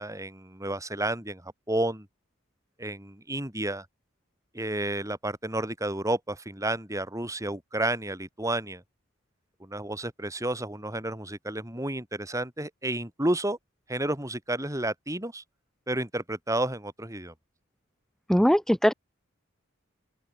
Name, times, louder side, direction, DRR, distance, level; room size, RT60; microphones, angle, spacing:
voice 1, 0.0-2.1 2.8-3.9 4.5-8.8 9.6-13.6 13.9-15.4 15.9-17.3, right 1 dB, 15° right, 6.5 m, -31 dB
voice 2, 18.3-18.9, equal, ahead, 0.7 m, -20 dB
open air
head